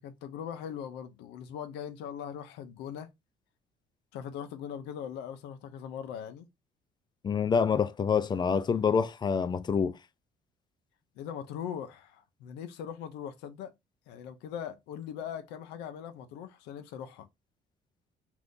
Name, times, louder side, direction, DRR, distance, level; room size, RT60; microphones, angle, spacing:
voice 1, 0.0-3.1 4.1-6.5 11.2-13.7 14.1-17.3, left 8 dB, 90° left, 0.5 m, -40 dB
voice 2, 7.2-9.9, left 6 dB, 25° left, 0.3 m, -26 dB
2.6 x 2.5 x 3.5 m
cardioid pair, 110°, 17 cm